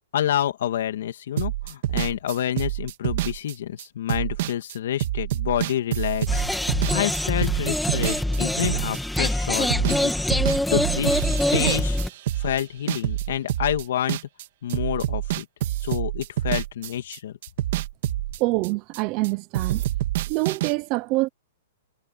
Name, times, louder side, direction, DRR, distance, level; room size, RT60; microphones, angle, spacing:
voice 1, 0.1-6.5 6.9-10.1 10.7-11.3 11.5-12.0 12.4-14.2 14.6-15.5 15.8-17.4, left 11 dB, 60° left, 2.4 m, -28 dB
sound 1, 1.4-10.0 10.3-14.4 14.7-19.3 19.5-20.7, right 14 dB, 45° right, 3.0 m, -27 dB
sound 2, 6.3-12.1, left 1 dB, ahead, 2.5 m, -24 dB
voice 2, 18.4-19.8 20.3-21.3, right 22 dB, 25° right, 0.6 m, -25 dB
hypercardioid pair, 170°, 0 cm